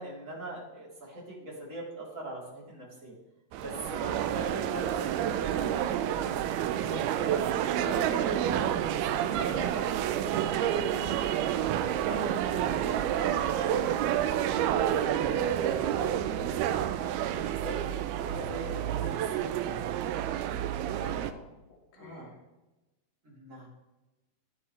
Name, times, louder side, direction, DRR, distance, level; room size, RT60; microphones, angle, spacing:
voice 1, 0.0-3.1 3.6-6.4 6.9-7.5 7.7-9.8 10.1-10.4 12.0-16.6 17.3-20.2 22.0-22.3 23.2-23.7, right 1 dB, 20° right, -5 dB, 3.5 m, -41 dB
sound 1, 3.5-21.3, right 10 dB, 80° right, 2.4 m, -29 dB
voice 2, 21.0-21.5 21.9-22.3, left 3 dB, 70° left, -2 dB, 3.6 m, -48 dB
15.5 x 9.0 x 3.3 m, 1.1 s
omnidirectional pair, 4.7 m